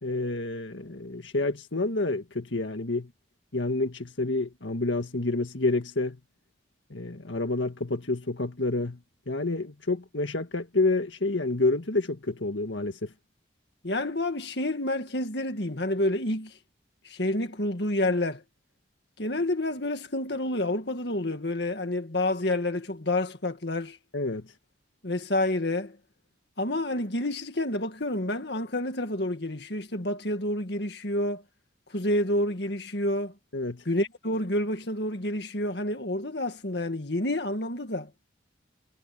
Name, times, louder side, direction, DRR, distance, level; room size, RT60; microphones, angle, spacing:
voice 1, 0.0-3.1 3.5-6.2 6.9-9.0 9.3-13.1 24.1-24.5 33.5-33.8, left 2 dB, 80° left, 1.9 m, -28 dB
voice 2, 13.8-16.6 17.0-18.4 19.2-24.0 25.0-26.0 26.6-31.4 31.9-33.3 33.9-38.1, left 1 dB, 60° left, 2.0 m, -29 dB
head